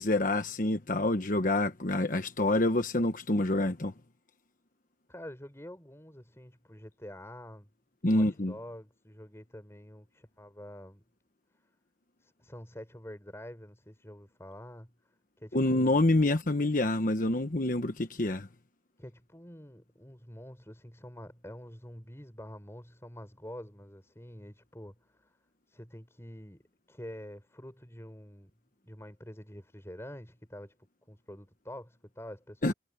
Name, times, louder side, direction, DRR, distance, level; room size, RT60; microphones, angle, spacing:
voice 1, 0.0-3.9 8.0-8.5 15.5-18.5 32.6-32.7, left 2 dB, 45° left, 1.2 m, -27 dB
voice 2, 5.1-7.7 8.1-11.0 12.2-14.9 15.4-16.0 19.0-25.4 25.7-28.5 28.8-30.7 31.1-32.7, equal, 15° left, 6.3 m, -47 dB
head